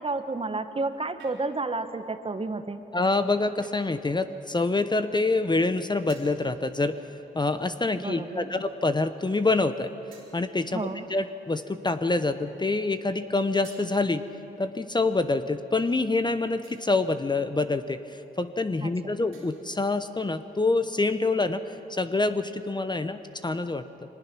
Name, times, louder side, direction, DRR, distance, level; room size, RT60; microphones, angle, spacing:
voice 1, 0.0-2.8 7.9-8.5 10.7-11.1 18.8-19.1, right 3 dB, 30° right, 10 dB, 1.2 m, -31 dB
sound 1, 1.2-1.8 3.6-4.0 6.1-6.5 7.6-8.0 8.7-8.8 10.1-10.7 13.6-14.5 16.6-17.1 19.3-19.9, right 5 dB, 90° right, 3.7 m, -55 dB
voice 2, 2.9-7.0 7.3-9.9 10.3-14.2 14.6-23.8, left 3 dB, 25° left, 10 dB, 0.9 m, -26 dB
22.5 x 19.5 x 6.1 m, 3.0 s
supercardioid pair, 55°, 19 cm